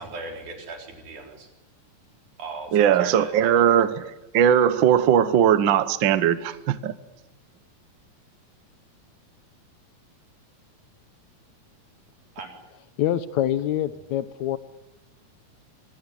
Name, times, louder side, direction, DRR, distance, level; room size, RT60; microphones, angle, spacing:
voice 1, 0.0-1.5 2.4-3.5 12.4-12.5, right 3 dB, 80° right, 2 dB, 5.7 m, -38 dB
voice 2, 2.7-6.9, right 9 dB, 60° right, 13 dB, 1.3 m, -19 dB
voice 3, 13.0-14.6, left 11 dB, 75° left, 14 dB, 2.3 m, -25 dB
25.0 x 18.5 x 9.9 m, 0.96 s
omnidirectional pair, 3.4 m